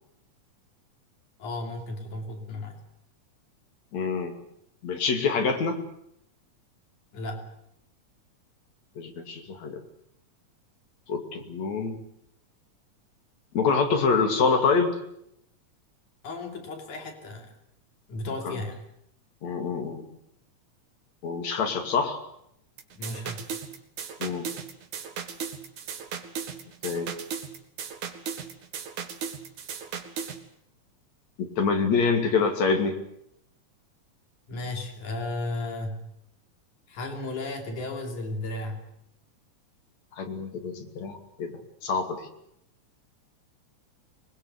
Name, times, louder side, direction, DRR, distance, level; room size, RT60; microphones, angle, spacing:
voice 1, 1.4-2.8 7.1-7.5 16.2-17.5 18.1-18.8 22.9-23.5 34.5-36.1 36.9-38.9, left 2 dB, 80° left, 3 dB, 4.5 m, -34 dB
voice 2, 3.9-4.3 4.8-5.8 9.0-9.8 11.1-12.0 13.5-15.0 18.4-18.5 19.4-20.0 21.2-22.2 24.2-24.5 26.8-27.1 31.4-33.0 40.2-42.3, left 5 dB, 65° left, 5 dB, 3.9 m, -26 dB
sound 1, 22.8-30.4, right 7 dB, 80° right, 3.4 m, -36 dB
25.0 x 21.0 x 8.3 m, 0.76 s
omnidirectional pair, 3.4 m